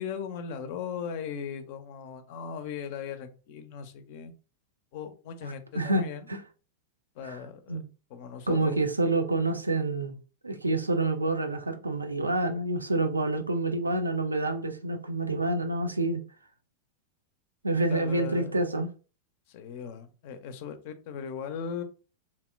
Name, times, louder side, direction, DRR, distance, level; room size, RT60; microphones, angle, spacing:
voice 1, 0.0-4.3 4.9-6.3 7.2-7.8 8.1-8.8 17.9-18.6 19.5-21.8, left 7 dB, 50° left, 0.4 m, -38 dB
voice 2, 5.4-6.4 7.2-7.4 7.7-7.9 8.5-10.2 10.4-16.2 17.6-18.9, right 2 dB, 80° right, 0.4 m, -28 dB
2.7 x 2.1 x 2.4 m
figure-of-eight pair, 90°, 0 cm